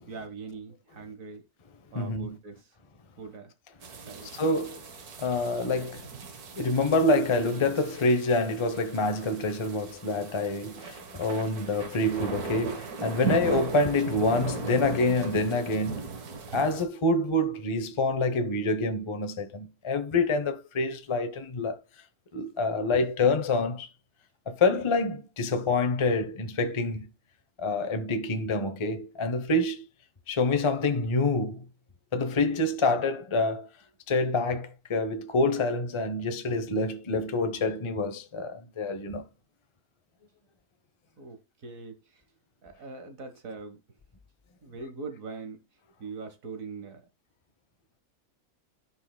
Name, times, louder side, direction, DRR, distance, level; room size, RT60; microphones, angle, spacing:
voice 1, 0.1-1.5 1.9-2.8 3.2-3.5 4.0-4.4 41.2-42.2 42.6-43.8 44.6-45.6 46.0-47.0, right 4 dB, 65° right, 1.8 m, -42 dB
voice 2, 1.9-2.4 4.3-4.8 5.2-6.1 6.6-16.1 16.5-21.8 22.3-23.9 24.5-27.1 27.6-29.8 30.3-31.6 32.1-33.7 34.1-39.2, left 2 dB, 30° left, 0.6 m, -27 dB
sound 1, 3.8-16.8, right 5 dB, 80° right, 1.7 m, -38 dB
13.5 x 5.5 x 2.2 m
omnidirectional pair, 1.6 m